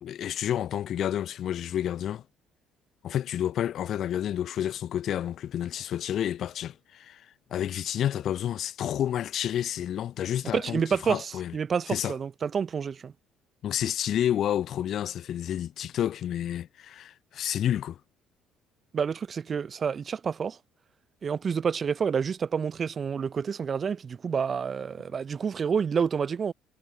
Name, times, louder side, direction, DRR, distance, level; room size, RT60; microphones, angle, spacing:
voice 1, 0.0-2.2 3.0-11.5 11.9-12.1 13.6-18.0, left 10 dB, 50° left, 0.5 m, -30 dB
voice 2, 10.5-13.1 18.9-20.6 21.2-26.5, right 6 dB, 40° right, 0.7 m, -28 dB
figure-of-eight pair, 50°, 0 cm